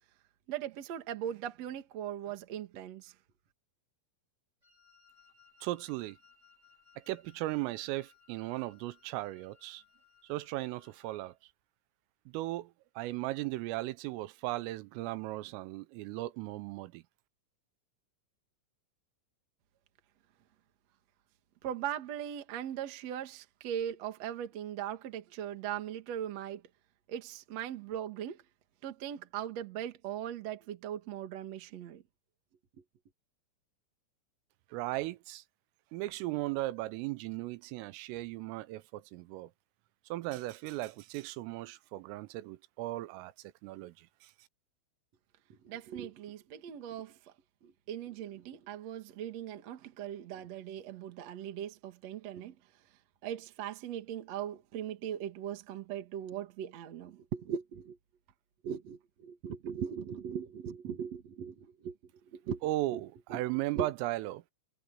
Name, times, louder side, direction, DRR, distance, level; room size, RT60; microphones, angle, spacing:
voice 1, 0.5-3.1 21.6-26.6 27.1-28.4 28.8-32.0 45.5-47.2 47.6-52.5 53.2-58.0 58.6-62.0 62.3-62.6 62.9-63.0 63.3-63.4 63.7-63.9, right 9 dB, 60° right, 1.8 m, -39 dB
Wind instrument woodwind instrument, 4.6-11.4, left 6 dB, 20° right, 7.4 m, -65 dB
voice 2, 5.6-6.2 7.1-9.8 10.3-11.3 12.3-17.0 34.7-35.4 35.9-39.5 40.1-43.3 43.6-44.3 62.6-64.4, right 18 dB, 90° right, 3.4 m, -37 dB
omnidirectional pair, 5.9 m